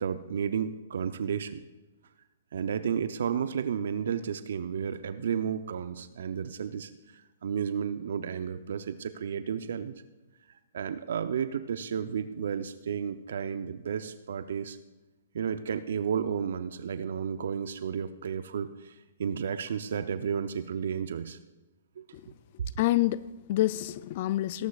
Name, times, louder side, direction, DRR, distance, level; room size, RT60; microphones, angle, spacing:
voice 1, 0.0-1.6 2.5-9.9 10.7-14.8 15.3-21.4 22.0-22.3, right 7 dB, 70° right, 11 dB, 0.6 m, -32 dB
voice 2, 22.8-24.7, left 15 dB, 45° left, 18 dB, 0.4 m, -27 dB
19.0 x 11.5 x 2.4 m, 1.1 s
hypercardioid pair, 130°, 0 cm